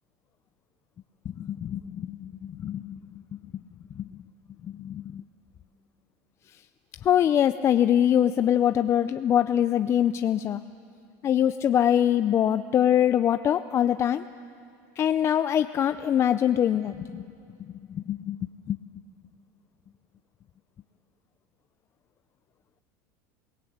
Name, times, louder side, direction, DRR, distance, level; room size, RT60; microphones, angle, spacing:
voice 1, 1.4-3.0 4.0-4.1 4.6-5.2 7.0-10.6 11.2-14.2 15.0-17.2 17.9-18.4 18.7-18.8, left 10 dB, 35° left, 11 dB, 0.5 m, -23 dB
27.0 x 19.0 x 8.7 m, 2.4 s
supercardioid pair, 125°, 8 cm